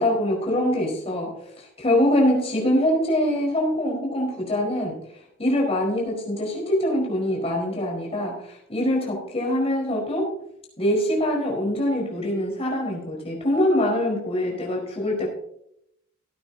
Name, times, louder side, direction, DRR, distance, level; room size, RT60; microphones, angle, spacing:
voice 1, 0.0-5.0 5.4-10.3 10.8-15.3, left 1 dB, 30° left, -1 dB, 4.7 m, -24 dB
18.0 x 9.6 x 2.8 m, 0.75 s
head